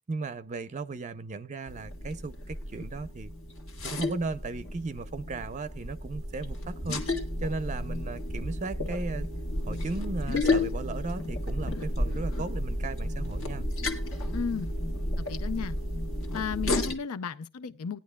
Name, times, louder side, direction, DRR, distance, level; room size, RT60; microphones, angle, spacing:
voice 1, 0.1-3.3 3.8-9.3 9.7-13.6, right 3 dB, 35° right, 0.5 m, -36 dB
sound 1, 1.7-16.9, left 1 dB, 65° left, 1.7 m, -32 dB
voice 2, 14.3-14.8 15.2-15.8 16.3-18.0, left 6 dB, 85° left, 0.5 m, -34 dB
19.0 x 10.5 x 2.2 m
head